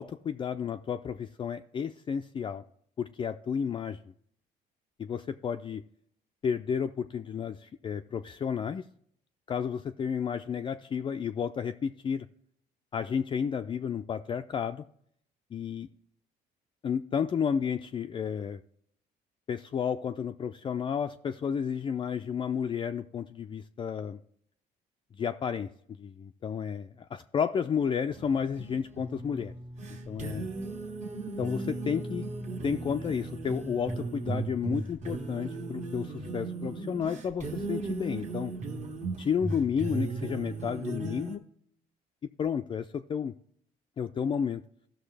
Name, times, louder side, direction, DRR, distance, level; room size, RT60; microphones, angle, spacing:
voice 1, 0.0-2.6 3.0-4.0 5.0-5.8 6.4-8.8 9.5-12.3 12.9-14.8 15.5-15.9 16.8-18.6 19.5-24.2 25.2-25.7 26.0-29.5 30.1-30.5 31.4-32.2 32.6-38.5 39.2-41.4 42.4-43.3 44.0-44.6, left 7 dB, 30° left, 0.3 m, -32 dB
sound 1, 28.1-41.4, right 3 dB, 45° right, 1.6 m, -37 dB
15.0 x 6.1 x 3.3 m
cardioid pair, 110°, 17 cm